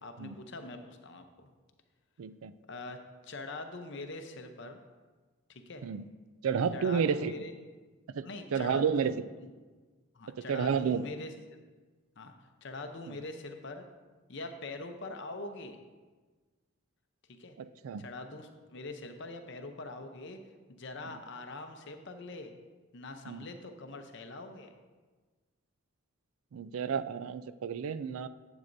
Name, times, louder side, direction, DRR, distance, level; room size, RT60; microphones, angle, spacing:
voice 1, 0.0-1.5 2.7-4.8 5.5-5.8 6.7-7.5 8.2-9.2 10.1-11.3 12.2-12.3 12.6-13.8 14.3-15.8 17.3-17.5 18.0-20.4 20.7-22.5 22.9-24.7, left 2 dB, 55° left, 6 dB, 0.7 m, -43 dB
voice 2, 2.2-2.5 5.8-6.0 6.4-7.3 8.2-8.3 8.5-9.1 10.4-11.0 17.6-18.0 23.3-23.5 26.5-28.3, right 6 dB, 75° right, 14 dB, 0.4 m, -31 dB
10.5 x 8.1 x 2.6 m, 1.3 s
head